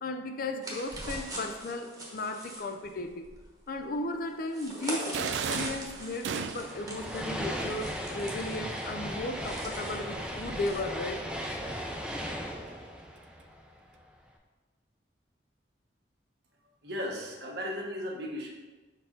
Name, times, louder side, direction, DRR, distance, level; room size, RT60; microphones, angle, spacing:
voice 1, 0.0-3.3 3.7-11.2, left 2 dB, 55° left, 7 dB, 0.4 m, -35 dB
sound 1, 0.6-10.8, right 1 dB, 20° right, 1.1 m, -42 dB
sound 2, 5.1-6.9, right 6 dB, 85° right, 0.3 m, -34 dB
sound 3, 6.6-14.0, equal, 5° right, 0.5 m, -37 dB
voice 2, 16.8-18.5, equal, 65° right, -1 dB, 1.2 m, -36 dB
5.7 x 4.6 x 3.8 m, 1.2 s
head